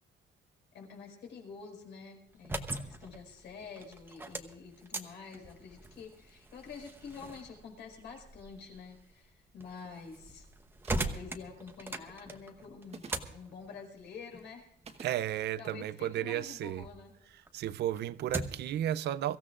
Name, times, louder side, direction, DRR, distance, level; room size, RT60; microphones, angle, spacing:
voice 1, 0.7-10.5 11.0-17.1, left 5 dB, 80° left, 5.2 m, -48 dB
sound 1, 2.3-17.0 17.4-18.8, right 2 dB, 10° right, 0.9 m, -42 dB
sound 2, 10.8-11.3 12.8-13.3 14.8-15.2, right 5 dB, 35° right, 1.2 m, -48 dB
voice 2, 15.0-16.9 17.5-19.4, right 12 dB, 70° right, 0.5 m, -33 dB
23.5 x 15.0 x 2.5 m
cardioid pair, 170°, 18 cm